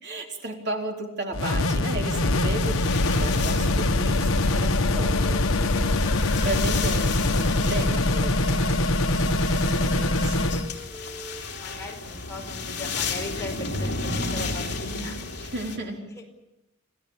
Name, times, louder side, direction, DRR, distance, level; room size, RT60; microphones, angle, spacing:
voice 1, 0.0-10.5 15.4-16.0, right 2 dB, 50° right, 1 dB, 3.8 m, -35 dB
sound 1, 1.3-10.7, left 2 dB, 70° left, 1.3 m, -23 dB
sound 2, 2.6-15.8, left 4 dB, 50° left, 4.0 m, -34 dB
Wind instrument woodwind instrument, 4.4-7.9 8.2-12.5, left 1 dB, 15° right, 3.1 m, -45 dB
voice 2, 11.6-15.5 15.9-16.4, left 2 dB, 15° left, 0 dB, 4.9 m, -39 dB
27.5 x 17.0 x 8.8 m, 0.94 s
head